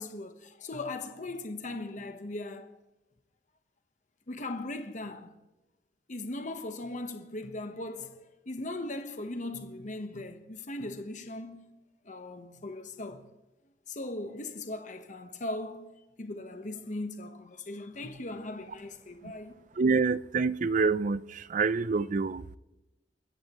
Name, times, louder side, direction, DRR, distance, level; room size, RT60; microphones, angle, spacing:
voice 1, 0.0-2.8 4.3-5.3 6.1-11.7 12.0-13.3 13.9-19.5, left 2 dB, 45° left, 1.1 m, -39 dB
voice 2, 19.8-22.6, right 4 dB, 45° right, 0.4 m, -27 dB
29.5 x 14.5 x 3.0 m
head